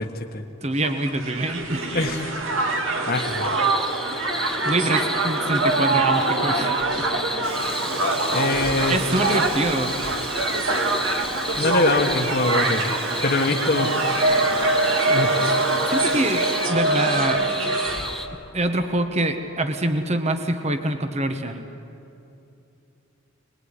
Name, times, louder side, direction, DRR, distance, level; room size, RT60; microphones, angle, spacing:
voice 1, 0.0-0.4 1.9-2.3 2.6-3.6 8.3-9.0 11.6-12.9 13.2-13.9 15.1-15.5, left 2 dB, 50° left, 3 dB, 1.4 m, -24 dB
voice 2, 0.6-1.9 4.6-7.4 8.9-9.9 15.9-17.4 18.5-21.6, right 1 dB, 30° right, 7 dB, 1.3 m, -25 dB
Crowd, 0.8-18.2, right 2 dB, 70° right, 2.6 m, -24 dB
sound 1, 3.1-18.3, left 1 dB, ahead, 0.9 m, -33 dB
Gull seagull, 7.4-16.7, right 3 dB, 90° right, 2.6 m, -33 dB
26.0 x 20.5 x 9.9 m, 2.8 s
head